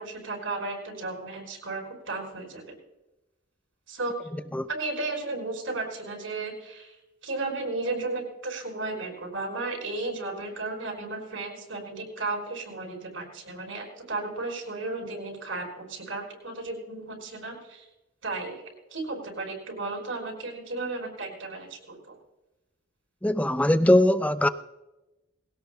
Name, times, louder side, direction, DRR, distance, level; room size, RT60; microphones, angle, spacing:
voice 1, 0.0-2.8 3.9-4.2 4.7-6.9 7.2-17.8 18.2-18.6 18.9-22.2, right 3 dB, 75° right, 4.7 m, -34 dB
voice 2, 23.2-24.5, left 1 dB, 5° left, 0.4 m, -21 dB
21.0 x 17.5 x 2.3 m
head